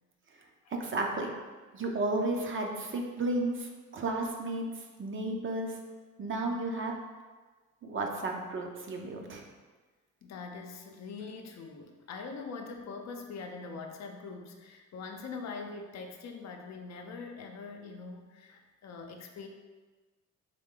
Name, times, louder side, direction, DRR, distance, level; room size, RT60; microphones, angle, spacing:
voice 1, 0.8-1.3 1.7-4.7 5.0-5.7 6.2-6.9 7.8-9.4, right 2 dB, 40° right, 1 dB, 0.7 m, -33 dB
voice 2, 10.2-19.5, left 4 dB, 60° left, 3 dB, 0.6 m, -43 dB
3.7 x 3.2 x 3.7 m, 1.3 s
cardioid pair, 90°, 30 cm